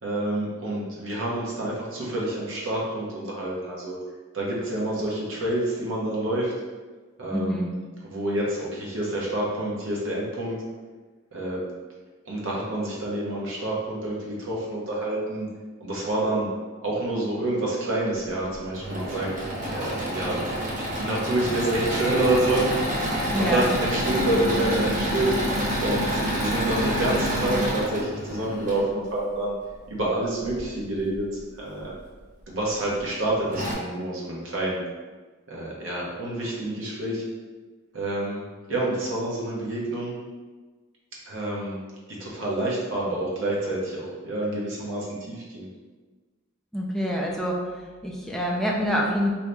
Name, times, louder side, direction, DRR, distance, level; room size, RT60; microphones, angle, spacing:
voice 1, 0.0-4.0 4.3-6.5 7.2-7.6 8.0-10.5 11.3-11.6 12.2-15.5 15.8-16.5 16.8-19.3 19.7-20.5 21.0-25.4 25.8-29.5 29.9-31.9 32.5-34.8 35.5-37.2 37.9-38.4 38.7-40.1 41.2-41.8 42.2-45.7, right 1 dB, 70° right, -4 dB, 0.9 m, -28 dB
voice 2, 7.3-7.7 23.2-23.7 46.7-47.6 48.0-49.3, equal, ahead, -2 dB, 0.4 m, -26 dB
Engine / Mechanisms, 18.5-28.8 30.4-31.2 31.8-31.9 32.2-32.3 33.1-33.2 33.5-33.7, equal, 40° right, 0.6 m, -28 dB
2.7 x 2.7 x 3.3 m, 1.3 s
head